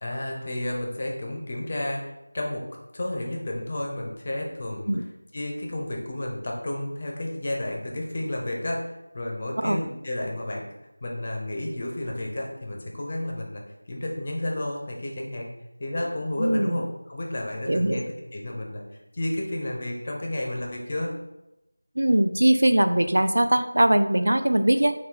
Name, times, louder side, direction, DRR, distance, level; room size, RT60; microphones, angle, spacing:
voice 1, 0.0-2.6 2.9-4.9 5.3-10.7 11.0-15.5 15.8-18.0 18.3-18.8 19.1-21.2, left 1 dB, 20° left, 0 dB, 0.5 m, -31 dB
voice 2, 16.4-16.8 17.7-18.0 22.0-24.9, right 1 dB, 75° right, 9 dB, 0.4 m, -21 dB
5.6 x 2.2 x 3.7 m, 0.94 s
figure-of-eight pair, 180°, 0 cm